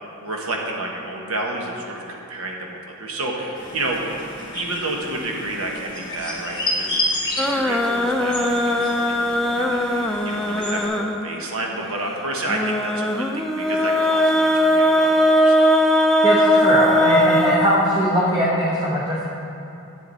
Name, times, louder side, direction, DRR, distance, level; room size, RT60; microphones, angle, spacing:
voice 1, 0.2-4.1 4.5-7.0 7.4-15.7, right 2 dB, 75° right, 0 dB, 1.3 m, -30 dB
sound 1, 3.5-10.8, left 1 dB, 20° left, 1.7 m, -30 dB
sound 2, 7.4-11.4 12.5-18.3, equal, ahead, 0.4 m, -19 dB
voice 2, 16.2-19.2, equal, 25° right, -7 dB, 1.2 m, -20 dB
11.0 x 8.0 x 4.1 m, 2.8 s
head